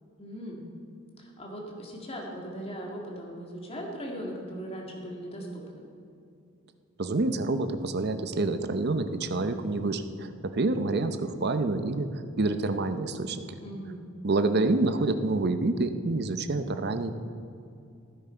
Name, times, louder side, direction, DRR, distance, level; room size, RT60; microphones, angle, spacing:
voice 1, 0.2-0.6 1.2-5.9 13.6-14.0, equal, 30° left, -1 dB, 2.0 m, -39 dB
voice 2, 7.0-12.1 12.4-13.5 14.2-17.1, right 2 dB, 50° right, 9 dB, 0.7 m, -27 dB
15.5 x 9.7 x 4.5 m, 2.5 s
head